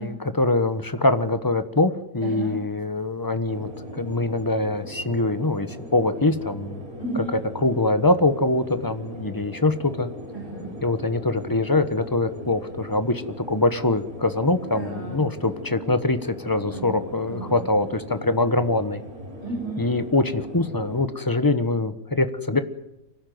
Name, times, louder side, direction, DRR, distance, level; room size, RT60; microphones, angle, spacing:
voice 1, 0.0-6.8 7.5-10.1 10.8-13.2 13.5-19.0 19.8-22.6, left 2 dB, 15° left, 10 dB, 0.9 m, -23 dB
voice 2, 2.2-2.6 7.0-7.3 10.3-10.7 14.7-15.2 16.7-16.9 17.3-17.6 19.4-19.9, right 2 dB, 35° left, 0 dB, 6.4 m, -33 dB
sound 1, 3.5-21.1, equal, 50° right, 4.9 m, -39 dB
24.5 x 16.5 x 9.4 m, 0.90 s
omnidirectional pair, 1.9 m